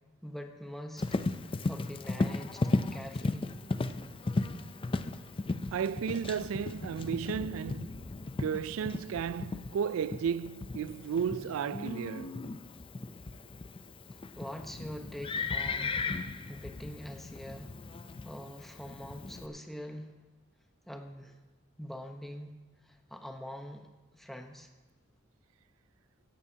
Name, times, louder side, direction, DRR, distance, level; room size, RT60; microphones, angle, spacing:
voice 1, 0.2-1.1 1.7-2.6 2.9-3.5 14.1-16.1 16.5-17.8 18.2-20.1 20.9-21.4 21.8-22.6 22.8-24.7, equal, ahead, 0.9 m, -44 dB
Livestock farm animals working animals, 1.0-19.5, left 3 dB, 25° left, 0.5 m, -36 dB
voice 2, 5.7-8.1 8.4-12.4, right 7 dB, 90° right, 0.3 m, -34 dB
16.5 x 14.5 x 2.8 m
head